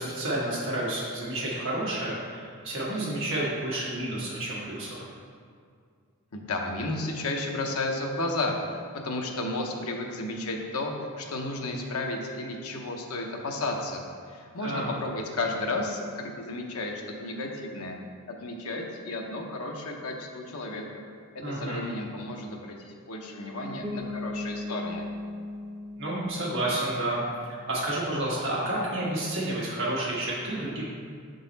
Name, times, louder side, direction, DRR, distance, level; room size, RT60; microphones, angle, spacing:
voice 1, 0.0-5.1 14.6-14.9 21.4-21.8 26.0-30.8, right 1 dB, 55° right, -5 dB, 1.4 m, -30 dB
voice 2, 6.3-8.6 9.0-14.0 14.3-18.0 18.3-20.8 21.3-25.1, left 2 dB, 75° left, 1 dB, 0.8 m, -33 dB
Bass guitar, 23.8-27.5, left 2 dB, 15° right, 0.6 m, -38 dB
6.4 x 3.9 x 4.0 m, 2.2 s
head